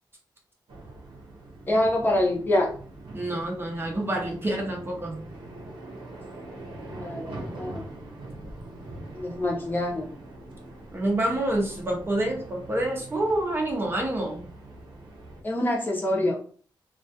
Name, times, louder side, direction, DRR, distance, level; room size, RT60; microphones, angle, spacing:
sound 1, 0.7-15.4, right 2 dB, 80° right, 0.6 m, -43 dB
voice 1, 1.7-2.7 7.0-7.8 9.1-10.1 15.4-16.4, left 1 dB, 25° left, -2 dB, 0.6 m, -25 dB
voice 2, 3.1-5.2 10.9-14.4, right 1 dB, 30° right, 0 dB, 0.5 m, -27 dB
2.3 x 2.2 x 2.6 m, 0.43 s
wide cardioid pair, 140°, 8 cm